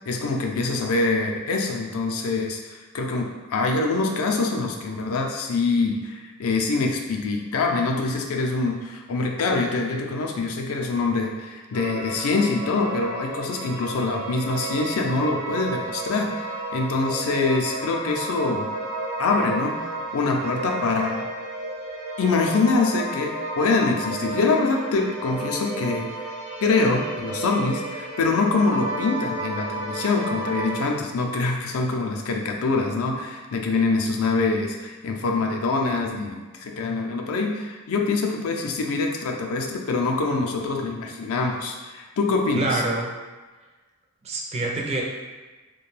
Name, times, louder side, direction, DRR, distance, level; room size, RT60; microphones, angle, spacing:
voice 1, 0.1-18.7 19.2-21.3 22.2-26.1 26.6-42.8, left 3 dB, 65° left, 2 dB, 0.4 m, -24 dB
sound 1, 11.7-30.9, right 2 dB, 80° right, 0.7 m, -32 dB
voice 2, 42.5-43.1 44.2-45.0, right 2 dB, 30° right, -1 dB, 0.4 m, -26 dB
2.5 x 2.2 x 3.1 m, 1.3 s
head